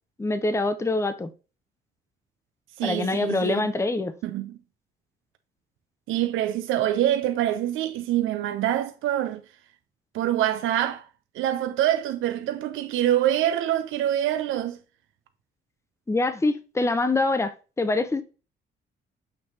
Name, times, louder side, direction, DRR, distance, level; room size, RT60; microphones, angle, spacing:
voice 1, 0.2-1.3 2.8-4.1 16.1-18.2, left 2 dB, 15° left, 0.7 m, -25 dB
voice 2, 2.8-3.7 4.2-4.6 6.1-9.4 10.1-11.0 11.3-14.8, right 12 dB, 85° right, 0.6 m, -25 dB
6.8 x 3.0 x 5.2 m
cardioid pair, 90°, 20 cm